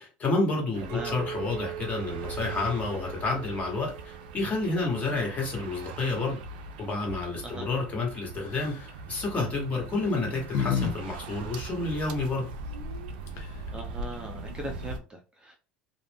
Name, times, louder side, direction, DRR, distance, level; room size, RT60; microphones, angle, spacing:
voice 1, 0.0-6.4 6.8-12.5, left 3 dB, 30° left, 0 dB, 1.3 m, -30 dB
sound 1, 0.7-15.0, right 3 dB, 85° right, 0.3 m, -41 dB
Chink clink, 0.9-6.1, right 9 dB, 60° right, 0.8 m, -42 dB
sound 2, 8.4-8.9 9.8-10.9 11.2-11.3 13.0-13.1 13.3-13.7, left 7 dB, 60° left, 0.7 m, -30 dB
voice 2, 13.7-15.6, right 1 dB, 20° right, 3 dB, 0.5 m, -39 dB
2.4 x 2.0 x 3.4 m, 0.33 s
supercardioid pair, 95°, 5 cm